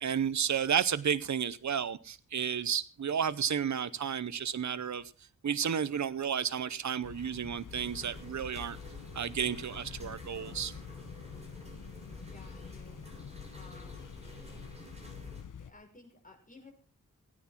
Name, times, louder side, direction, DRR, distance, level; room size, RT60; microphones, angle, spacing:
voice 1, 0.0-5.1 5.4-8.8 9.1-10.7, right 8 dB, 65° right, 0.8 m, -32 dB
sound 1, 7.0-15.7, left 7 dB, 85° left, 1.2 m, -47 dB
sound 2, 7.7-15.4, equal, 20° right, 6.3 m, -50 dB
voice 2, 12.2-13.0 13.5-14.0 15.6-16.7, left 3 dB, 25° left, 6.2 m, -55 dB
18.0 x 9.7 x 5.9 m
wide cardioid pair, 80°, 31 cm